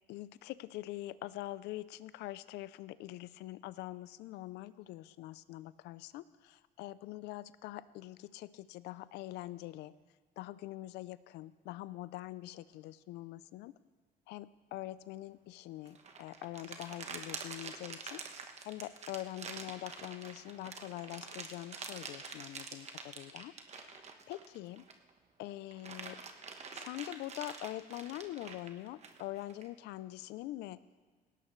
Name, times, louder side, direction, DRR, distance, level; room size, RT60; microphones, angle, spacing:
voice 1, 0.1-9.9 10.4-13.7 14.3-24.8 25.4-26.2 26.7-30.8, left 16 dB, 85° left, 17 dB, 0.5 m, -44 dB
sound 1, 15.9-25.1 25.5-29.7, right 5 dB, 40° right, 1.2 m, -46 dB
18.5 x 17.5 x 3.2 m, 1.5 s
cardioid pair, 110°, 17 cm